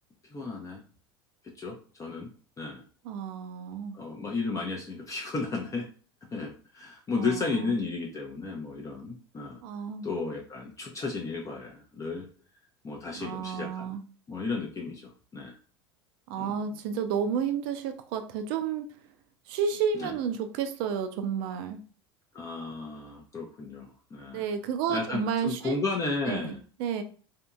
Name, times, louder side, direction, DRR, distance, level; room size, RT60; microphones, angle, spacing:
voice 1, 0.2-0.8 1.5-2.3 2.6-2.8 3.9-5.9 6.3-9.6 10.0-12.3 12.8-14.0 14.3-15.6 16.4-16.6 19.9-20.1 22.3-24.4 24.9-26.6, left 3 dB, 25° left, -1 dB, 0.6 m, -33 dB
voice 2, 3.0-4.0 7.2-7.7 9.6-10.1 13.1-14.0 16.3-18.9 19.5-21.8 24.3-25.8 26.3-27.0, right 7 dB, 60° right, 9 dB, 0.5 m, -31 dB
2.8 x 2.7 x 2.3 m, 0.40 s
hypercardioid pair, 80°, 13 cm